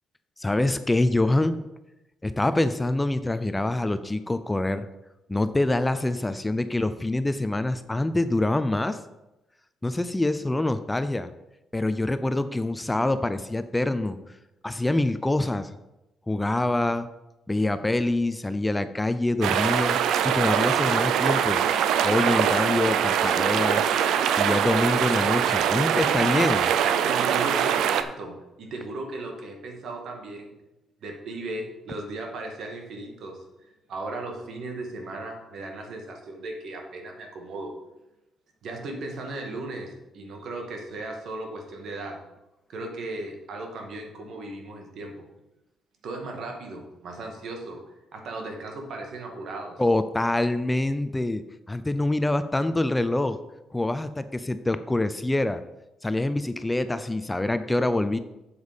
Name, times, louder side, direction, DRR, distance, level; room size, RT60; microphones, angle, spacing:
voice 1, 0.4-1.6 2.2-4.9 5.3-9.0 9.8-11.3 11.7-14.2 14.6-15.7 16.3-17.1 17.5-21.6 22.0-23.9 24.4-26.7 49.8-51.4 51.7-53.4 53.7-55.6 56.0-58.2, left 2 dB, 15° left, 11 dB, 0.5 m, -25 dB
sound 1, 19.4-28.0, right 8 dB, 85° right, 0.6 m, -23 dB
voice 2, 27.0-30.5 31.0-37.7 38.6-42.2 42.7-45.2 46.0-47.8 48.1-49.8, right 2 dB, 70° right, 2 dB, 2.1 m, -36 dB
7.8 x 7.4 x 5.2 m, 0.95 s
cardioid pair, 90°, 0 cm